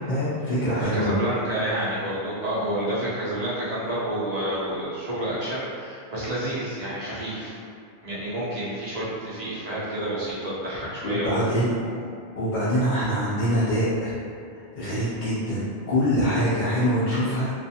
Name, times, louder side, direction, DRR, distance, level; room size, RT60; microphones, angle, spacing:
voice 1, 0.1-1.3 11.0-11.8 12.4-14.2 14.7-17.5, equal, 55° left, -10 dB, 0.5 m, -24 dB
voice 2, 0.8-7.6 8.0-11.6 14.8-15.0, right 1 dB, 45° right, -9 dB, 0.6 m, -29 dB
2.4 x 2.3 x 2.6 m, 2.3 s
omnidirectional pair, 1.1 m